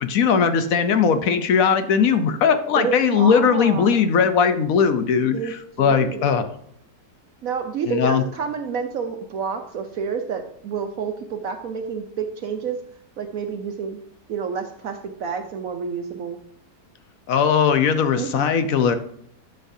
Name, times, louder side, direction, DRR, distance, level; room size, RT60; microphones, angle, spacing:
voice 1, 0.1-6.5 7.9-8.2 17.3-19.0, left 6 dB, 60° left, 9 dB, 1.0 m, -19 dB
voice 2, 2.8-4.0 5.3-5.5 5.8-6.3 7.4-12.8 13.2-14.0 14.3-16.4 18.1-18.5, right 6 dB, 65° right, 6 dB, 1.0 m, -29 dB
10.5 x 6.6 x 2.7 m, 0.68 s
omnidirectional pair, 1.8 m